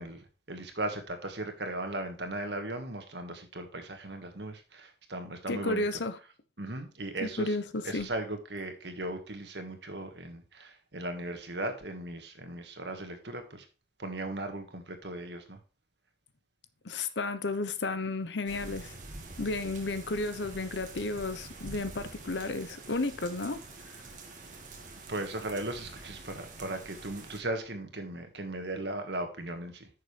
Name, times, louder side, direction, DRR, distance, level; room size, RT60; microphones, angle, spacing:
voice 1, 0.0-5.9 6.6-7.6 7.8-13.7 14.0-15.6 25.1-29.9, right 1 dB, 80° right, 1.6 m, -37 dB
voice 2, 5.5-6.2 7.2-8.1 16.8-18.9 19.4-23.6, left 2 dB, 85° left, 0.9 m, -32 dB
sound 1, 18.5-27.4, right 2 dB, 45° right, 1.8 m, -46 dB
10.0 x 6.7 x 3.3 m
head